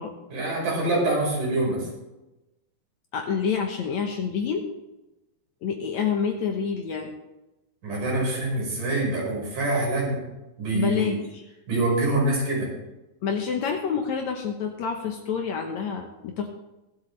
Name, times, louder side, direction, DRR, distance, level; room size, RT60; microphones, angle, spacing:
voice 1, 0.3-1.9 7.8-10.2 10.6-11.2 11.7-12.7, right 2 dB, 65° right, -4 dB, 6.3 m, -25 dB
voice 2, 3.1-4.7 5.6-7.1 10.7-11.4 13.2-16.5, left 6 dB, 65° left, 3 dB, 2.0 m, -28 dB
24.0 x 8.1 x 3.3 m, 1.0 s
omnidirectional pair, 4.0 m